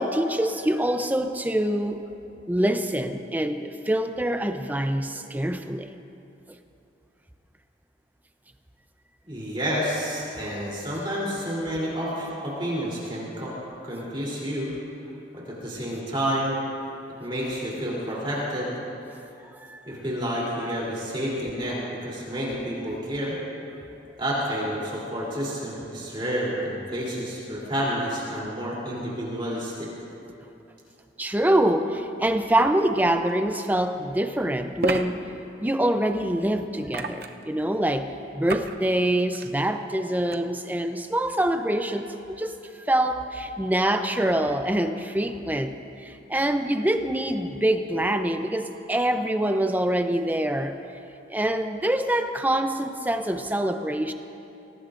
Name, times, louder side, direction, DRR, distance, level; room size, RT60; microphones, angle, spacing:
voice 1, 0.0-2.1 2.5-5.9 19.6-19.8 31.2-35.2 35.6-45.7 46.0-50.8 51.3-54.1, right 1 dB, 10° right, 7 dB, 0.5 m, -25 dB
voice 2, 9.3-13.5 13.8-14.7 15.3-16.5 17.2-18.7 19.8-23.4 24.2-29.9, equal, 30° right, -6 dB, 3.2 m, -29 dB
sound 1, 33.3-33.4 34.8-35.1 36.9-37.4 38.5-38.8 39.2-39.5 40.3-40.4, right 3 dB, 55° right, 0.7 m, -29 dB
23.0 x 18.0 x 2.5 m, 2.8 s
head